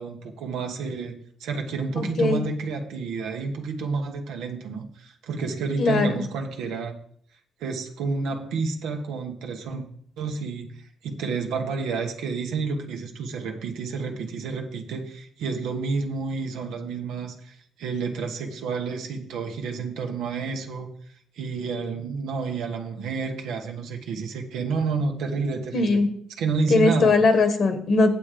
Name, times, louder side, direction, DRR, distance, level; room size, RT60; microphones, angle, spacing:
voice 1, 0.0-6.9 7.6-9.8 10.2-20.9 21.3-26.0 26.4-27.2, right 4 dB, 85° right, 3 dB, 1.2 m, -30 dB
voice 2, 2.0-2.4 5.8-6.1 25.7-26.1 26.7-28.1, left 3 dB, 55° left, 8 dB, 1.4 m, -20 dB
8.3 x 7.5 x 5.0 m, 0.63 s
cardioid pair, 90°, 0 cm